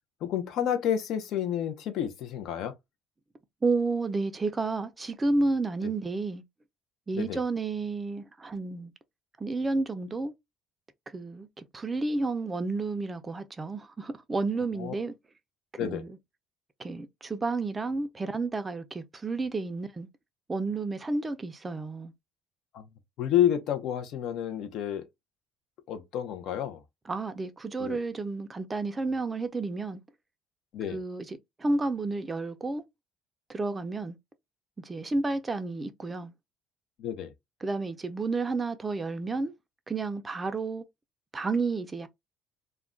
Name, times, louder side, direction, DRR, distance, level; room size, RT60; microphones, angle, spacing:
voice 1, 0.2-2.7 7.1-7.4 14.7-14.9 15.8-16.0 22.7-22.9 23.2-25.1 25.9-26.8 27.8-28.0 30.7-31.0 37.0-37.3, left 10 dB, 65° left, 0.6 m, -29 dB
voice 2, 3.6-6.4 7.1-8.9 9.4-10.3 11.1-15.1 15.8-16.1 16.8-20.1 20.5-22.1 27.1-30.0 30.9-31.3 31.6-32.8 33.5-34.2 34.8-36.3 37.6-39.5 39.9-40.8 41.3-42.1, right 3 dB, 15° right, 0.4 m, -31 dB
2.3 x 2.1 x 3.6 m
cardioid pair, 135°, 0 cm